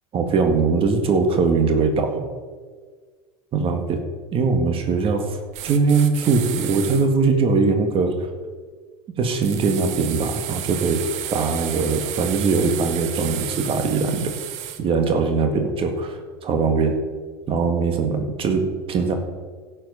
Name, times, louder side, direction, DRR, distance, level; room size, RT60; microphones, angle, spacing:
voice 1, 0.1-2.2 3.5-4.0 4.3-8.3 9.2-14.3 14.8-17.0 17.5-19.2, right 4 dB, 40° right, 5 dB, 1.6 m, -21 dB
sound 1, 5.5-7.1 9.4-14.8, right 11 dB, 55° right, 1.2 m, -32 dB
12.0 x 7.6 x 5.5 m, 1.5 s
hypercardioid pair, 90°, 14 cm